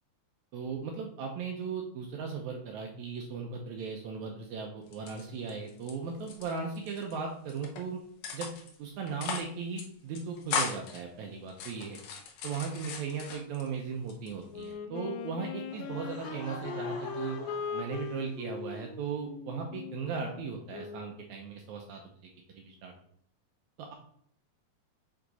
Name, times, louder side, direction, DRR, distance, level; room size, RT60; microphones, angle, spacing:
voice 1, 0.5-8.0 8.3-8.5 8.8-12.0 12.4-17.4 17.7-22.0 22.5-22.9 23.8-23.9, right 5 dB, 80° right, 2 dB, 1.7 m, -37 dB
sound 1, 4.9-5.9 6.2-7.1 7.5-7.8 8.2-8.8 9.1-9.5 9.8-9.9 10.2-11.0 11.5-13.7 14.1-14.7, left 5 dB, 70° left, 1.7 m, -37 dB
Wind instrument woodwind instrument, 14.5-21.2, left 6 dB, 90° left, 2.4 m, -40 dB
Laughter / Crowd, 15.7-18.5, left 3 dB, 45° left, 1.5 m, -46 dB
7.8 x 3.5 x 4.0 m, 0.66 s
omnidirectional pair, 4.1 m